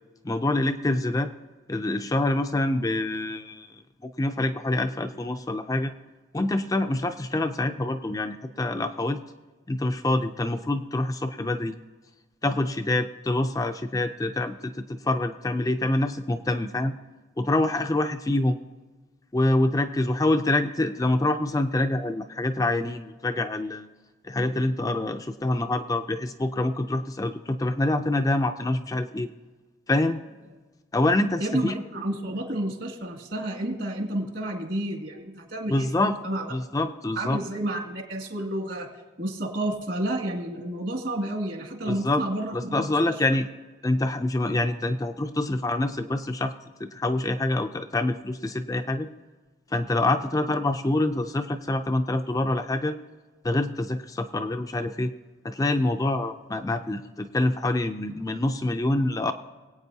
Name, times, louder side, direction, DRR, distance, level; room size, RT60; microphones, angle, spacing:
voice 1, 0.2-1.3 1.7-3.8 4.2-5.9 6.3-9.2 9.7-11.8 12.4-16.9 17.4-18.6 19.3-23.9 24.2-29.3 29.9-30.2 30.9-31.7 35.7-36.1 36.5-37.4 41.9-42.2 42.5-43.5 43.8-46.5 46.8-49.1 49.7-53.0 53.4-55.1 55.4-59.3, left 2 dB, 15° left, 6 dB, 0.4 m, -26 dB
voice 2, 31.4-36.5 37.2-38.9 39.2-43.2, right 1 dB, 60° right, 1 dB, 2.2 m, -30 dB
22.5 x 8.7 x 2.8 m, 1.3 s
head